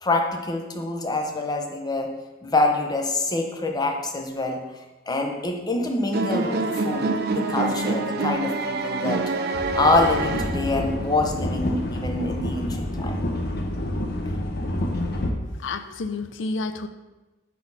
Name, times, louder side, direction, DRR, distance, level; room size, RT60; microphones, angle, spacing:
voice 1, 0.0-2.1 2.4-4.6 5.1-6.6 6.8-9.2 9.7-13.2, left 2 dB, 20° left, 2 dB, 0.7 m, -25 dB
sound 1, 6.1-11.0, right 3 dB, 55° right, 0.5 m, -26 dB
sound 2, 9.5-15.3, left 1 dB, 55° left, 0.7 m, -28 dB
voice 2, 15.6-16.9, left 3 dB, 80° left, 10 dB, 0.4 m, -30 dB
4.5 x 4.3 x 5.5 m, 1.1 s
head